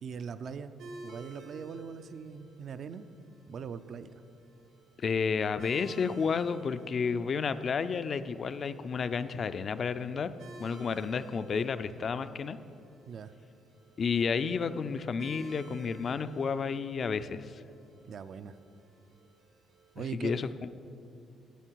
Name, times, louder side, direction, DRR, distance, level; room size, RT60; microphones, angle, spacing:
voice 1, 0.0-3.1 3.5-4.1 10.9-11.1 13.1-13.3 18.1-18.6 19.9-20.4, right 6 dB, 60° right, 12 dB, 0.4 m, -41 dB
sound 1, 0.8-19.9, right 2 dB, 90° right, 1.7 m, -55 dB
voice 2, 5.0-10.3 10.6-12.6 14.0-17.6 20.1-20.7, left 5 dB, 50° left, 12 dB, 0.4 m, -31 dB
11.5 x 8.1 x 4.6 m, 2.6 s
cardioid pair, 90°, 0 cm